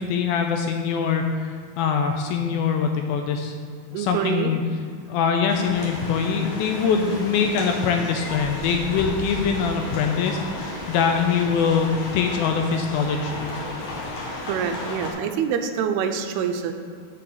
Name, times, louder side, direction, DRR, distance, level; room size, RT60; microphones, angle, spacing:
voice 1, 0.0-3.5 3.9-4.6 5.1-13.5, left 6 dB, 80° left, 4 dB, 2.2 m, -23 dB
voice 2, 3.9-4.6 9.5-9.6 14.4-16.7, right 7 dB, 85° right, 6 dB, 2.5 m, -26 dB
sound 1, 5.5-15.1, left 2 dB, 60° left, 2.1 m, -33 dB
6.9 x 5.8 x 6.3 m, 2.1 s
omnidirectional pair, 4.6 m